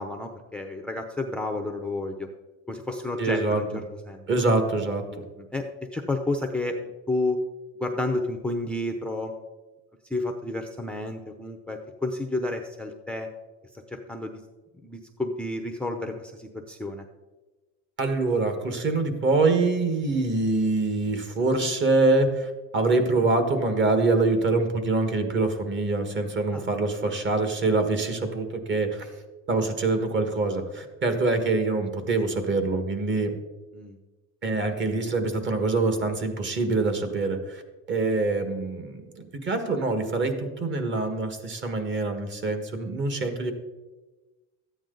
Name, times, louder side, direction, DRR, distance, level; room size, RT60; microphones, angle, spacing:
voice 1, 0.0-2.3 2.7-3.7 4.1-4.3 5.4-5.7 5.9-6.8 7.1-7.4 7.8-9.3 10.1-13.3 13.9-14.3 14.8-17.0 26.5-26.6 33.7-34.0, left 2 dB, 5° left, 3 dB, 0.6 m, -30 dB
voice 2, 3.2-3.8 4.3-5.0 18.0-29.1 29.5-33.3 34.4-37.6 37.9-43.5, right 3 dB, 35° right, 7 dB, 1.6 m, -25 dB
13.5 x 9.0 x 3.9 m, 1.2 s
cardioid pair, 130°, 32 cm